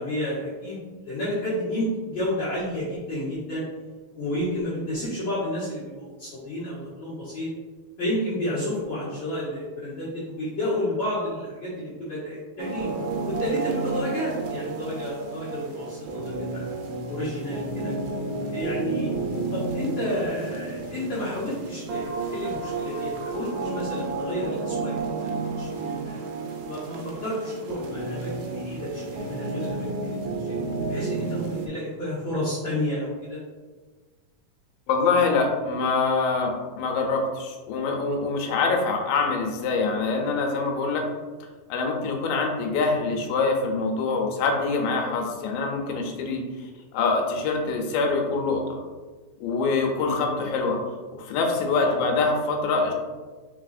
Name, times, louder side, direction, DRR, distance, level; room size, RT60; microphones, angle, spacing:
voice 1, 0.0-3.6 4.1-7.5 8.0-12.9 13.3-16.7 17.1-17.9 18.5-19.1 19.5-25.1 25.6-26.2 26.6-30.6 30.9-33.4 40.9-41.1 46.1-46.4 49.9-50.2 51.7-51.9, left 1 dB, 65° left, -11 dB, 1.2 m, -31 dB
sound 1, 12.6-31.7, right 3 dB, 80° right, 2.4 m, -31 dB
voice 2, 34.9-41.0 41.7-46.4 46.9-48.8 49.4-50.8 51.2-52.9, left 4 dB, 85° left, 2 dB, 2.3 m, -24 dB
4.8 x 3.9 x 2.5 m, 1.4 s
omnidirectional pair, 4.2 m